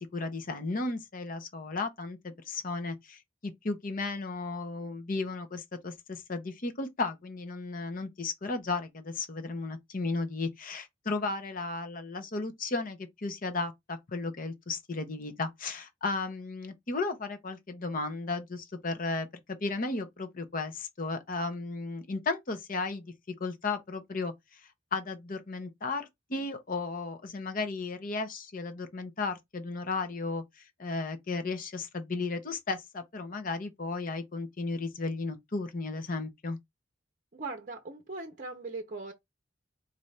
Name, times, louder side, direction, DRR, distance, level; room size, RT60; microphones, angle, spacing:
voice 1, 0.0-36.6, left 3 dB, 45° left, 0.8 m, -35 dB
voice 2, 37.3-39.1, right 3 dB, 40° right, 0.7 m, -39 dB
4.1 x 2.5 x 3.2 m
head